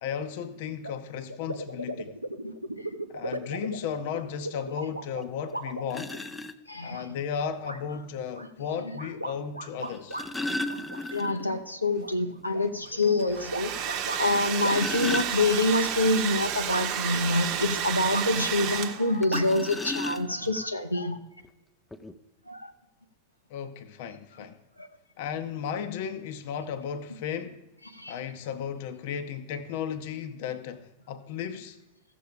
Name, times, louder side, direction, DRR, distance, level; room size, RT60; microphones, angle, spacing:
voice 1, 0.0-2.2 3.1-6.2 6.8-10.2 23.5-24.6 25.2-27.6 28.1-31.8, left 7 dB, 50° left, 0.7 m, -35 dB
sound 1, 0.8-0.9 1.3-6.4 6.9-7.4 7.6-7.8 8.3-10.3 10.7-11.6 12.0-14.2 14.6-14.8 15.7-15.8 16.7-17.1 18.1-18.6 19.3-19.5, right 1 dB, 85° right, 0.7 m, -36 dB
sound 2, 5.2-5.3 5.9-6.5 7.9-8.0 9.8-11.6 11.9-12.0 12.4-12.5 13.0-13.1 14.3-15.9 19.2-20.6 21.4-21.5 21.9-22.1, left 2 dB, 10° left, 0.6 m, -34 dB
voice 2, 6.7-7.1 11.1-13.7 14.2-21.2 22.5-22.7 24.8-24.9 27.9-28.1, left 2 dB, 85° left, 0.7 m, -26 dB
Domestic sounds home sounds, 13.2-19.3, right 9 dB, 40° right, 0.9 m, -31 dB
15.0 x 6.9 x 5.1 m
figure-of-eight pair, 90°, 0 cm